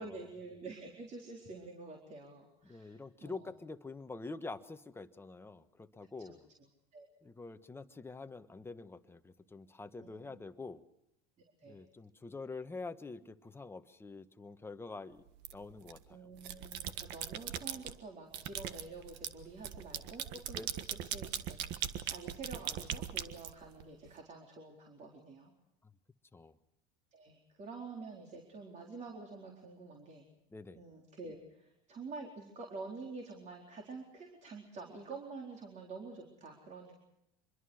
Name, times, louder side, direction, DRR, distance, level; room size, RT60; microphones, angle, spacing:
voice 1, 0.0-3.5 6.9-7.1 10.0-10.3 11.6-11.8 16.1-20.6 20.9-25.5 27.1-30.2 30.8-37.0, right 3 dB, 35° right, 0 dB, 4.3 m, -48 dB
voice 2, 2.6-6.4 7.2-10.8 11.6-15.2 15.5-16.3 20.5-20.7 25.8-25.9 26.3-26.5 30.5-30.8, left 3 dB, 10° left, 9 dB, 1.3 m, -46 dB
sound 1, 15.4-16.0 16.4-17.9 18.3-24.1, right 10 dB, 60° right, 1.5 m, -40 dB
25.0 x 22.0 x 6.4 m, 0.83 s
supercardioid pair, 105°, 20 cm